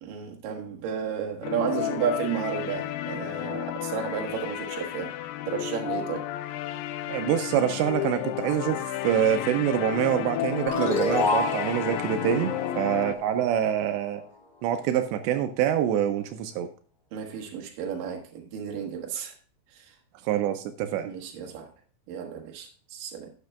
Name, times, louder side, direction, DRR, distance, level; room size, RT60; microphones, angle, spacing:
voice 1, 0.0-5.1 5.5-6.3 12.4-12.6 17.1-19.3 21.0-21.7 22.1-23.3, right 7 dB, 60° right, 2.6 m, -32 dB
sound 1, 1.4-13.2, left 13 dB, 85° left, 2.3 m, -32 dB
voice 2, 7.1-14.2 14.6-16.7 20.2-21.1, right 10 dB, 85° right, 2.9 m, -26 dB
sound 2, 10.7-13.9, left 2 dB, 30° left, 4.1 m, -29 dB
11.5 x 9.1 x 2.3 m
omnidirectional pair, 5.1 m